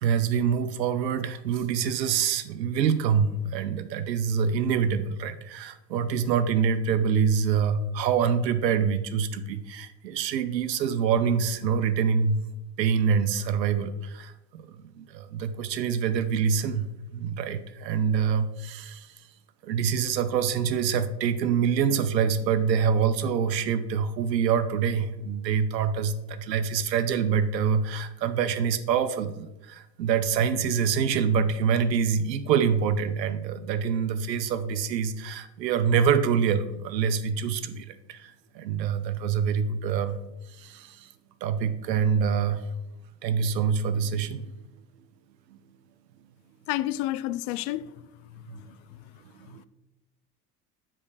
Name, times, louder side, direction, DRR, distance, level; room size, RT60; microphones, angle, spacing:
voice 1, 0.0-12.4 12.8-19.1 19.6-40.2 40.5-41.1 41.4-42.6 43.2-44.5 45.5-45.6 48.5-48.8 49.4-49.7, right 7 dB, 90° right, 0.6 m, -26 dB
voice 2, 46.7-47.9 48.3-49.0 49.4-49.6, left 15 dB, 60° left, 0.5 m, -31 dB
7.1 x 5.0 x 4.8 m
hypercardioid pair, 60°, 48 cm